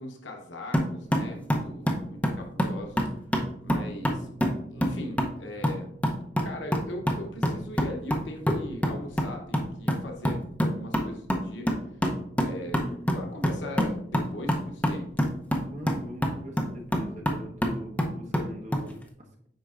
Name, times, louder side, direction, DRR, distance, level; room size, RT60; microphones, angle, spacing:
voice 1, 0.0-3.1 3.6-4.3 4.7-5.9 6.4-10.4 10.8-11.7 12.4-12.8 13.1-15.1, left 1 dB, 75° left, 2 dB, 0.9 m, -40 dB
sound 1, 0.7-18.9, equal, 10° left, 0.7 m, -28 dB
voice 2, 12.8-13.2 15.6-19.0, equal, 40° right, 0 dB, 1.1 m, -42 dB
7.8 x 5.2 x 2.5 m, 0.70 s
head